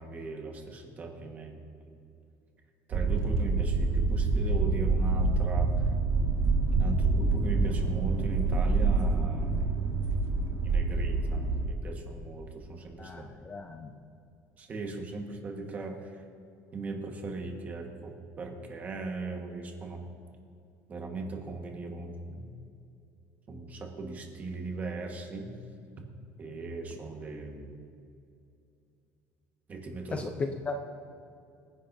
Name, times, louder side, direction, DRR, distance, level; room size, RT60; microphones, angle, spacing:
voice 1, 0.0-1.6 1.9-2.0 2.9-5.7 6.7-9.8 10.6-13.3 14.6-16.2 16.7-20.0 20.9-22.5 23.5-25.5 26.4-27.7 29.7-30.3, right 3 dB, 25° right, 2 dB, 1.5 m, -38 dB
Car journey with windows closed, 2.9-11.7, right 3 dB, 50° right, 1.6 m, -27 dB
voice 2, 13.0-13.9 30.1-30.8, left 3 dB, 20° left, 5 dB, 0.6 m, -35 dB
25.5 x 10.5 x 2.7 m, 2.5 s
cardioid pair, 160°, 6 cm